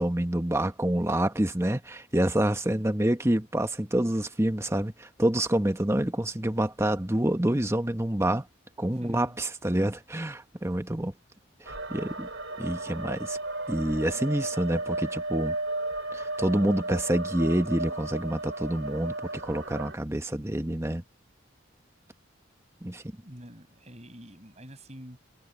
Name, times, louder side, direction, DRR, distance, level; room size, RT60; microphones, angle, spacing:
voice 1, 0.0-8.4 8.8-11.1 11.6-12.3 12.6-13.4 13.7-15.5 16.1-21.0 22.8-23.0, right 1 dB, 15° right, 1.2 m, -27 dB
voice 2, 8.9-9.4 23.2-25.2, equal, 35° right, 6.5 m, -46 dB
sound 1, 11.7-19.9, right 2 dB, 80° right, 3.1 m, -34 dB
head